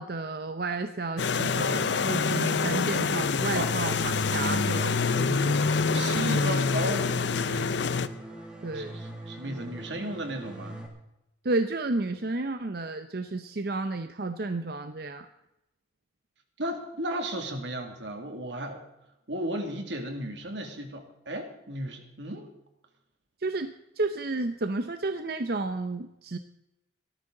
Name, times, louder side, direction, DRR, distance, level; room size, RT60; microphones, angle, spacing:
voice 1, 0.0-5.6 8.6-9.0 11.4-15.3 23.4-26.4, right 3 dB, 60° right, 8 dB, 0.8 m, -32 dB
sound 1, 1.2-8.1, left 4 dB, 85° left, 0.7 m, -26 dB
sound 2, 5.3-10.9, right 1 dB, 5° right, 2.4 m, -42 dB
voice 2, 5.9-7.7 8.7-10.8 16.6-18.8 19.3-22.5, right 1 dB, 90° right, 5 dB, 2.5 m, -34 dB
17.5 x 13.5 x 3.9 m, 0.87 s
head